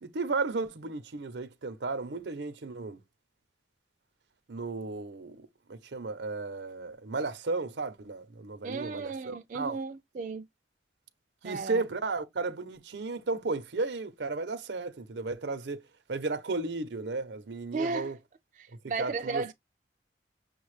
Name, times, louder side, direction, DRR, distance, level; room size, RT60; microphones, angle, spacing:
voice 1, 0.0-3.0 4.5-9.8 11.4-15.8 16.1-18.2 19.0-19.5, right 3 dB, 90° right, 0.7 m, -34 dB
voice 2, 8.6-10.4 11.4-11.8 17.7-18.1 18.6-19.5, right 4 dB, 45° right, 0.3 m, -34 dB
6.3 x 2.3 x 3.2 m
head